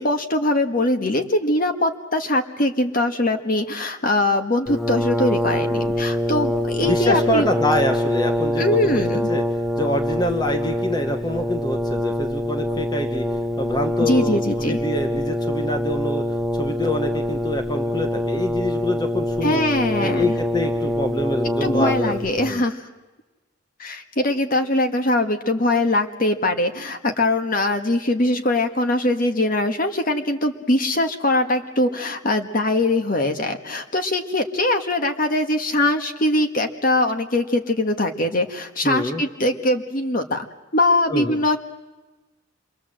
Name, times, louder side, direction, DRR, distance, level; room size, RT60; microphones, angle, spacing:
voice 1, 0.0-7.5 8.6-9.3 14.0-14.8 19.4-20.4 21.6-22.9 23.8-40.5 40.7-41.6, left 1 dB, 45° left, 6 dB, 1.6 m, -22 dB
Brass instrument, 4.7-22.5, left 1 dB, ahead, 0.8 m, -24 dB
voice 2, 6.8-13.3 13.6-19.6 20.0-22.6 38.8-39.2 41.1-41.4, left 1 dB, 20° left, 5 dB, 1.0 m, -26 dB
27.0 x 22.5 x 7.7 m, 1.1 s
head